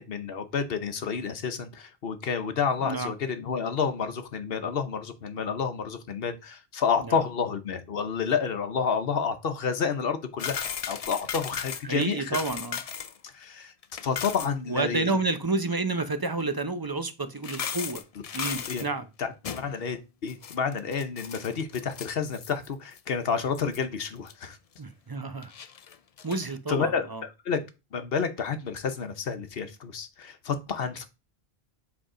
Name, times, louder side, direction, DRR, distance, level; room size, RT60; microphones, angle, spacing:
voice 1, 0.0-12.4 13.2-13.7 14.0-15.2 18.7-18.8 19.2-24.6 26.7-27.6 27.9-31.1, left 6 dB, 70° left, 1.0 m, -30 dB
sound 1, 10.4-13.2 13.4-13.5 13.8-14.5 16.4-16.5 17.3-18.9 19.4-19.8 20.3-22.7 23.0-23.1 23.5-23.8 24.3-24.4 25.4-26.5, left 8 dB, 50° left, 0.5 m, -36 dB
voice 2, 11.8-12.8 14.7-18.0 18.3-19.0 24.8-25.5 26.2-27.2, right 3 dB, 25° right, 0.6 m, -30 dB
7.8 x 3.5 x 4.9 m
omnidirectional pair, 1.0 m